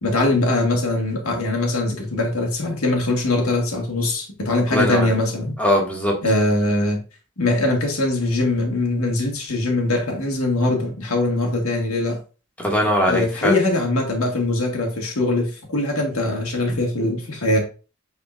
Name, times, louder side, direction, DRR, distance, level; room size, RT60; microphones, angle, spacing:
voice 1, 0.0-5.5 6.2-7.0 7.4-12.2 13.1-17.6, left 2 dB, 90° left, 1.9 m, -22 dB
voice 2, 4.7-5.1 5.6-6.1 12.6-13.5, equal, 5° left, 2.0 m, -20 dB
9.2 x 4.2 x 2.5 m
head